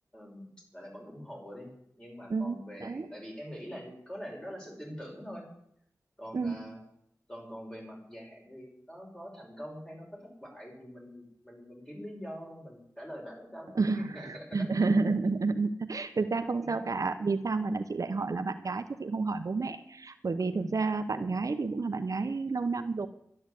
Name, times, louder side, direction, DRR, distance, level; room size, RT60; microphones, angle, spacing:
voice 1, 0.1-1.7 2.0-5.4 6.2-6.8 7.3-14.7 15.3-15.4 16.6-16.9 20.6-20.7, equal, 15° left, -2 dB, 6.0 m, -44 dB
voice 2, 2.3-3.1 6.3-6.6 13.7-23.1, right 3 dB, 65° right, 8 dB, 0.8 m, -30 dB
12.0 x 10.5 x 8.2 m, 0.71 s
wide cardioid pair, 90°, 6 cm